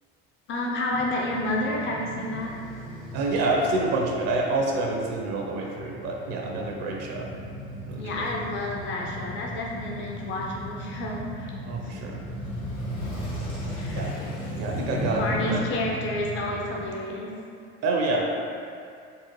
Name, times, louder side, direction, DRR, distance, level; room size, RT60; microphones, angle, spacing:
voice 1, 0.5-2.5 8.0-11.5 11.8-12.0 13.7-14.2 15.2-17.3, left 1 dB, 40° left, -2 dB, 0.6 m, -30 dB
Male speech man speaking / Motorcycle / Idling, 0.9-16.9, equal, 90° left, 1.2 m, -36 dB
voice 2, 3.1-7.3 7.8-8.3 11.7-12.2 13.9-14.1 14.6-15.6 17.8-18.4, right 2 dB, 60° right, -1 dB, 0.6 m, -27 dB
3.9 x 2.1 x 3.0 m, 2.4 s
supercardioid pair, 95°, 29 cm